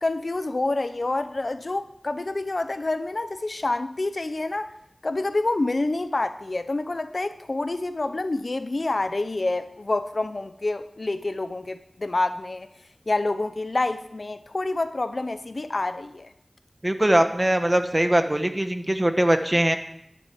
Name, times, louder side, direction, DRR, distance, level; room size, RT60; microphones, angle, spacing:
voice 1, 0.0-4.7 5.0-12.7 13.1-16.3, left 2 dB, 65° left, 0.7 m, -27 dB
voice 2, 16.8-19.8, right 1 dB, 25° right, 1.1 m, -21 dB
11.0 x 7.9 x 7.6 m
wide cardioid pair, 60°, 0 cm